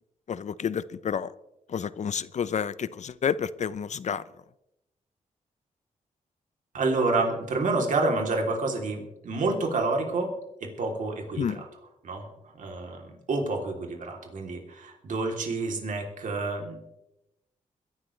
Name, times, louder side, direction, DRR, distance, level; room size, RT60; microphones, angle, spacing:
voice 1, 0.3-1.3 1.7-4.2 11.4-11.6, left 7 dB, 60° left, 17 dB, 0.6 m, -30 dB
voice 2, 6.7-10.3 10.6-11.7 12.0-16.8, right 3 dB, 70° right, 1 dB, 3.2 m, -29 dB
22.0 x 12.0 x 3.3 m, 0.86 s
cardioid pair, 75°, 14 cm